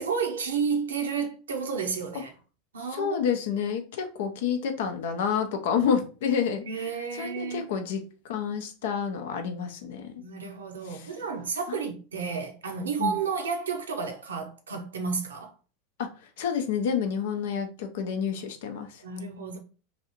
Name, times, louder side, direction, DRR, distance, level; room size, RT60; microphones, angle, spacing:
voice 1, 0.0-2.3 2.7-3.2 6.5-7.7 10.2-15.5 19.0-19.6, right 5 dB, 75° right, 0.7 m, -31 dB
voice 2, 2.9-6.9 7.2-10.1 10.8-11.1 11.7-11.8 13.0-13.2 16.0-16.1 16.4-19.0, left 7 dB, 60° left, 0.6 m, -29 dB
3.2 x 2.7 x 2.9 m
figure-of-eight pair, 85°, 0 cm